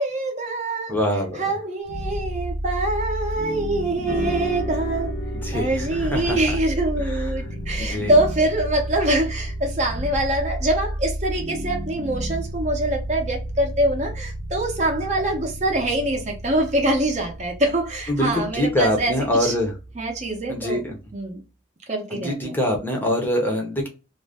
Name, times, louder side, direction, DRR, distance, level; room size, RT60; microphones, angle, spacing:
voice 1, 0.0-1.0 1.4-5.1 5.5-19.1 19.4-19.5 20.0-20.8 21.1-21.4 21.9-22.5, right 1 dB, 40° right, 0.6 m, -24 dB
voice 2, 0.9-1.4 5.4-6.6 7.0-7.3 7.8-8.1 18.1-19.7 20.5-21.0 22.1-23.9, left 1 dB, 10° left, 0.6 m, -24 dB
sound 1, 1.8-20.9, right 1 dB, 80° right, 0.7 m, -32 dB
sound 2, 4.1-12.6, left 2 dB, 75° left, 1.0 m, -38 dB
2.5 x 2.1 x 3.4 m
head